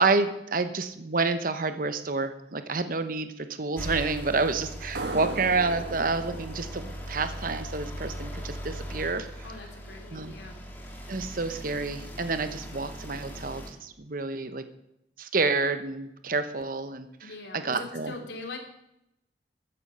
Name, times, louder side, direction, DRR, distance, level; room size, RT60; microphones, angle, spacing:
voice 1, 0.0-9.3 10.1-10.4 11.1-14.6 15.2-17.1 17.5-18.1, right 3 dB, 50° right, 10 dB, 1.0 m, -29 dB
sound 1, 3.8-13.7, equal, 10° left, 2.2 m, -39 dB
sound 2, 4.9-8.3, right 3 dB, 70° right, 1.5 m, -38 dB
voice 2, 9.4-10.6 17.2-18.6, left 3 dB, 85° left, 3 dB, 2.9 m, -41 dB
14.0 x 10.0 x 5.6 m, 0.81 s
head